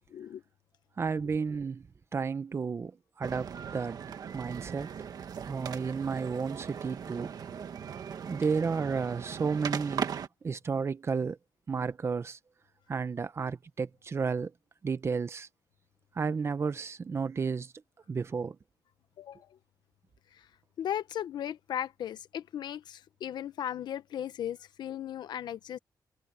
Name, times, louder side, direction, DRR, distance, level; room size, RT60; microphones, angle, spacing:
voice 1, 0.1-0.4 19.2-19.5 20.8-25.8, left 10 dB, 85° left, 0.9 m, -36 dB
voice 2, 1.0-1.9 2.1-4.0 4.3-4.9 5.5-7.3 8.3-10.1 10.4-11.4 11.7-12.4 12.9-14.5 14.8-15.5 16.1-17.7 18.1-18.6, right 5 dB, 35° right, 1.0 m, -32 dB
sound 1, 3.2-10.3, right 7 dB, 65° right, 1.7 m, -39 dB
wide cardioid pair, 125°, 7 cm